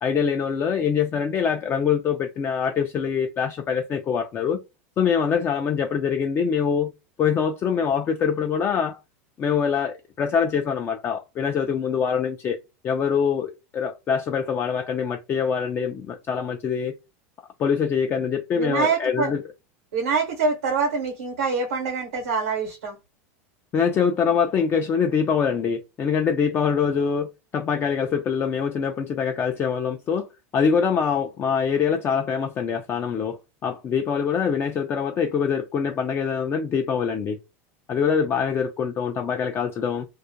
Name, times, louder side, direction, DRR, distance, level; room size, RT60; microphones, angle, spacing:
voice 1, 0.0-4.6 5.0-6.9 7.2-9.0 9.4-12.6 12.8-16.9 17.6-19.4 23.7-30.3 30.5-37.4 37.9-40.1, left 6 dB, 30° left, 0.4 m, -24 dB
voice 2, 18.5-19.3 19.9-23.0, right 4 dB, 90° right, 0.9 m, -25 dB
2.3 x 2.1 x 2.7 m
supercardioid pair, 110°, 8 cm